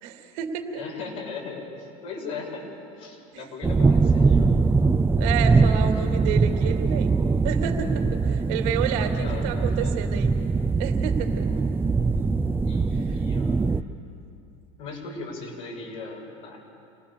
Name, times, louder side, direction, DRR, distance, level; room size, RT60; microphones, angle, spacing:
voice 1, 0.0-0.8 5.1-7.1 7.4-10.4 10.8-11.5, right 8 dB, 70° right, 4 dB, 2.8 m, -30 dB
voice 2, 0.7-2.6 2.9-4.6 9.0-10.0 12.6-13.7 14.8-16.6, left 4 dB, 80° left, -2 dB, 7.0 m, -38 dB
sound 1, 3.6-13.8, right 4 dB, 15° right, 0.6 m, -22 dB
27.5 x 19.0 x 7.1 m, 2.5 s
supercardioid pair, 105°, 17 cm